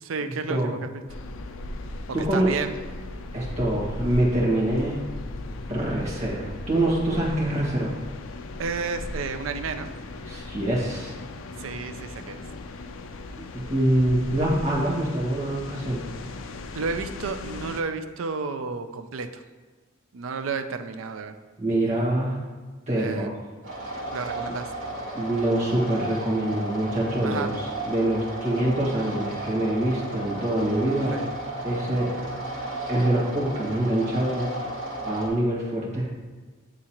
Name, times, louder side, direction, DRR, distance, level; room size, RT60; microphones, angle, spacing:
voice 1, 0.0-0.9 2.3-2.8 8.6-9.9 11.6-12.4 16.7-19.4 20.1-21.3 23.0-23.3 24.1-24.7 27.2-27.5 31.1-31.3, right 4 dB, 85° right, 8 dB, 0.4 m, -31 dB
sound 1, 1.1-17.8, left 2 dB, 85° left, 0.4 m, -37 dB
voice 2, 2.1-2.5 3.3-5.0 5.7-7.9 10.2-11.2 13.4-16.0 21.6-22.4 22.9-23.3 24.5-24.6 25.1-27.5 27.8-31.2 31.6-32.2 32.9-34.5 35.0-36.0, right 1 dB, 35° right, -5 dB, 1.7 m, -25 dB
sound 2, 23.6-35.3, right 1 dB, 70° right, 1.8 m, -34 dB
9.7 x 3.7 x 2.9 m, 1.4 s
head